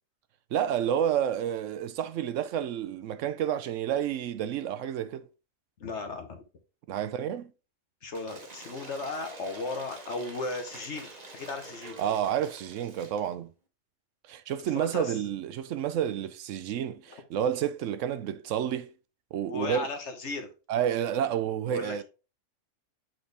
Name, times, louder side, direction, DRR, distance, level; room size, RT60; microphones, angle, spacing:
voice 1, 0.5-5.2 6.9-7.5 12.0-13.5 14.3-18.9 19.3-19.9 20.7-22.0, right 9 dB, 80° right, 0.9 m, -30 dB
voice 2, 5.8-6.4 8.0-12.0 14.7-15.2 17.1-17.2 19.5-20.5 21.7-22.0, left 3 dB, 65° left, 1.3 m, -36 dB
Cheering / Applause / Crowd, 8.1-13.3, right 2 dB, 35° right, 1.1 m, -47 dB
7.7 x 4.2 x 3.3 m
omnidirectional pair, 1.3 m